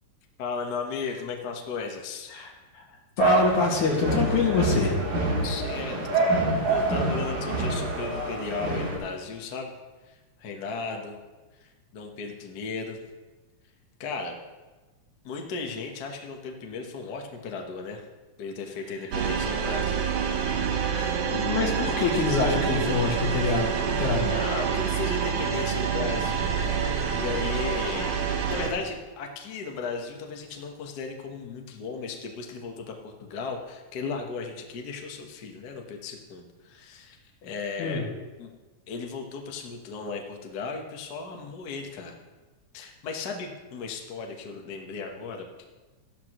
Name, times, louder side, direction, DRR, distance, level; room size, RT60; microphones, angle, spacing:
voice 1, 0.4-2.4 5.4-9.7 10.1-11.2 11.6-13.0 14.0-14.3 15.2-18.0 18.4-20.1 24.0-26.8 27.1-37.2 37.4-38.0 38.4-38.5 38.9-42.2 42.7-45.5, left 4 dB, 55° left, 2 dB, 1.2 m, -35 dB
voice 2, 2.3-2.8 3.2-5.0 20.9-24.4 37.8-38.0, left 4 dB, 80° left, -1 dB, 3.3 m, -26 dB
sound 1, 3.2-9.0, right 3 dB, 80° right, 4.1 m, -26 dB
sound 2, 19.1-28.7, right 7 dB, 65° right, 1.8 m, -27 dB
14.0 x 12.5 x 3.0 m, 1.2 s
omnidirectional pair, 3.4 m